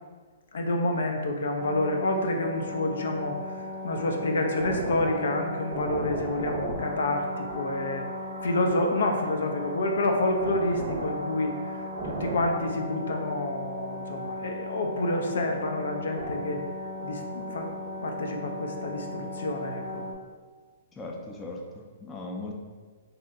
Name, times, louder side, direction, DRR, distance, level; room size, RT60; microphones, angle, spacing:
voice 1, 0.5-8.1 8.4-11.7 12.0-16.6 17.0-17.7 18.0-20.0, left 2 dB, 75° left, 3 dB, 0.4 m, -28 dB
sound 1, 1.6-20.1, equal, 35° right, 0.6 m, -36 dB
sound 2, 6.8-12.3, right 2 dB, 90° right, 0.4 m, -43 dB
voice 2, 21.0-22.5, left 2 dB, 15° left, -1 dB, 0.4 m, -38 dB
2.8 x 2.0 x 3.5 m, 1.5 s
hypercardioid pair, 130°, 0 cm